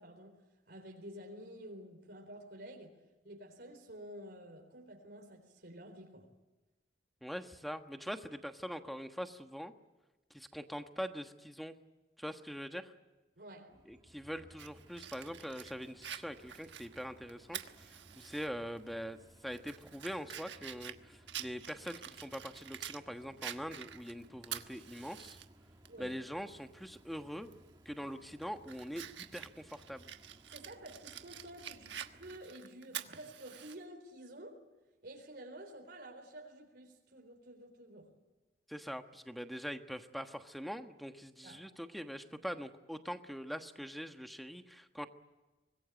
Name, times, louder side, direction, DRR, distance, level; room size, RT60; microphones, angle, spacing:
voice 1, 0.0-3.0 3.2-6.3 13.4-13.8 25.9-26.2 30.5-34.7 35.0-38.2 41.4-41.7, right 1 dB, 60° right, 4.0 m, -51 dB
voice 2, 7.2-9.7 10.3-11.7 12.2-12.9 13.9-19.2 19.4-25.4 26.0-27.5 27.8-30.1 38.7-45.1, equal, ahead, 1.3 m, -43 dB
sound 1, 13.7-32.4, right 1 dB, 20° right, 1.9 m, -61 dB
Fire, 14.6-18.5 18.9-19.0 19.5-23.0 23.4-25.4 25.8-25.9 27.4-27.7 28.2-33.8, right 10 dB, 75° right, 1.3 m, -47 dB
25.0 x 21.0 x 9.1 m
head